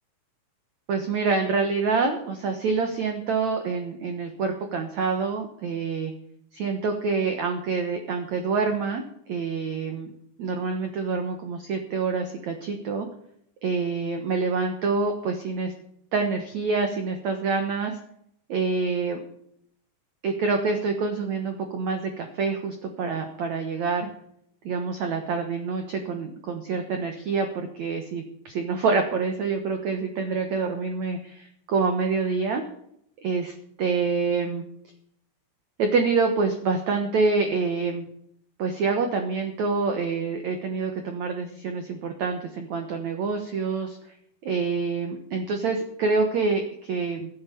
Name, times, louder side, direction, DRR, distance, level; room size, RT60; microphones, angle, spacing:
voice 1, 0.9-6.1 6.5-9.0 9.3-10.1 10.4-13.1 13.6-15.7 16.1-18.0 18.5-19.2 20.2-24.1 24.6-32.6 33.2-34.6 35.8-38.1 38.6-44.0 44.4-47.3, right 4 dB, 70° right, 5 dB, 1.8 m, -26 dB
15.0 x 8.8 x 6.9 m, 0.70 s
omnidirectional pair, 5.2 m